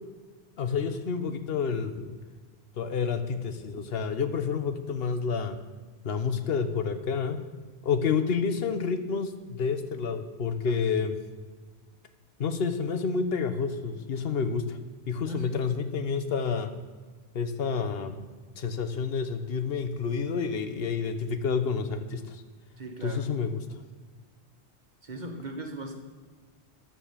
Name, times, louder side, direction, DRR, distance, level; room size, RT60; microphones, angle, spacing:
voice 1, 0.6-2.2 2.8-5.6 6.0-7.4 7.8-11.2 12.4-14.8 15.1-16.7 17.3-18.3 18.6-22.4 23.0-23.6, left 5 dB, 65° left, 9 dB, 1.1 m, -29 dB
voice 2, 15.2-15.7 22.8-23.3 25.0-25.9, right 1 dB, 45° right, 3 dB, 1.5 m, -39 dB
10.0 x 7.5 x 7.3 m, 1.5 s
omnidirectional pair, 1.1 m